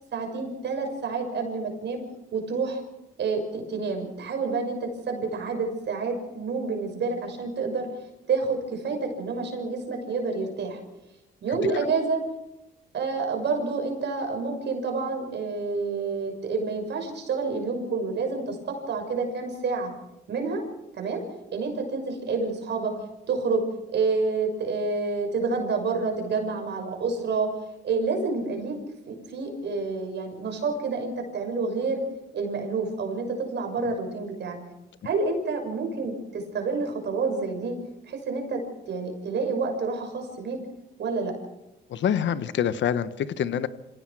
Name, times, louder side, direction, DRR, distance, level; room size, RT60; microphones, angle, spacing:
voice 1, 0.1-2.0 2.3-2.8 3.2-7.9 8.3-10.8 11.4-12.2 12.9-19.9 20.3-20.6 20.9-21.2 21.5-22.9 23.3-23.6 23.9-27.5 27.8-28.8 29.1-32.0 32.3-34.6 35.0-40.6 41.0-41.3, right 4 dB, 60° right, 4 dB, 6.5 m, -28 dB
voice 2, 41.9-43.7, left 9 dB, 70° left, 13 dB, 1.2 m, -26 dB
26.5 x 17.0 x 6.3 m, 0.95 s
cardioid pair, 90°, 20 cm